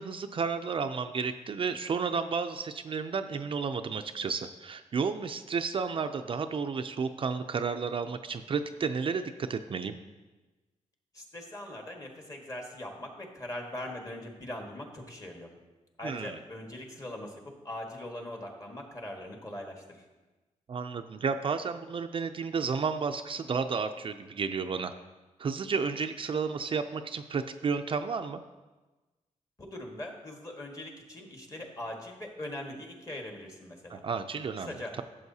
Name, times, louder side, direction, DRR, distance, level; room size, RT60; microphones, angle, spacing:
voice 1, 0.0-9.9 16.0-16.4 20.7-24.9 25.4-28.4 33.9-35.0, right 5 dB, 45° right, 7 dB, 0.4 m, -32 dB
voice 2, 11.1-15.5 16.0-20.0 29.6-34.0 34.6-34.9, left 1 dB, 30° left, 1 dB, 1.5 m, -41 dB
12.5 x 7.3 x 2.8 m, 1.2 s
wide cardioid pair, 115°, 12 cm